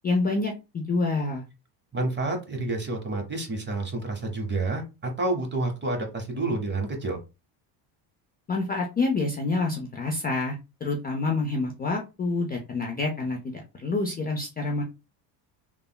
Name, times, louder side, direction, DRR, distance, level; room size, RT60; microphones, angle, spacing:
voice 1, 0.0-1.4 8.5-10.6 10.8-14.8, left 3 dB, 20° left, 1 dB, 0.4 m, -27 dB
voice 2, 1.9-7.2, right 2 dB, 20° right, 3 dB, 0.9 m, -29 dB
3.4 x 2.1 x 2.2 m, 0.27 s
supercardioid pair, 100°, 49 cm